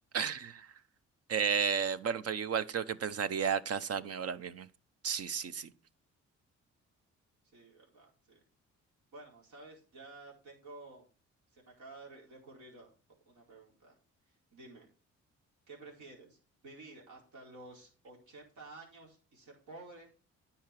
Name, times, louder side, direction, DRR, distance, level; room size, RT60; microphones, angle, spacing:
voice 1, 0.1-0.7 1.3-4.7 5.0-5.7, right 7 dB, 55° right, 0.9 m, -33 dB
voice 2, 7.4-8.4 9.1-11.1 11.5-12.9 13.2-14.0 14.2-14.9 15.7-20.1, right 2 dB, 75° right, 4.7 m, -52 dB
10.5 x 5.9 x 5.9 m
cardioid pair, 90°, 30 cm